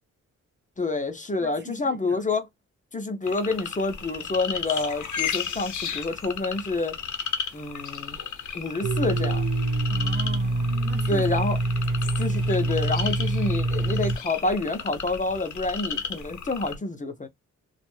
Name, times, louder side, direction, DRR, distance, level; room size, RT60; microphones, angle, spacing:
voice 1, 0.8-2.5 2.9-7.0 7.5-8.2 8.5-9.5 11.1-11.6 12.2-17.3, left 3 dB, 25° left, 0.5 m, -28 dB
voice 2, 1.4-2.2 9.9-11.3, right 4 dB, 35° right, 0.4 m, -40 dB
sound 1, 3.3-16.8, left 7 dB, 70° left, 0.6 m, -34 dB
Domestic sounds home sounds, 8.8-14.2, right 2 dB, 70° right, 0.8 m, -25 dB
2.3 x 2.2 x 3.1 m
wide cardioid pair, 105°, 31 cm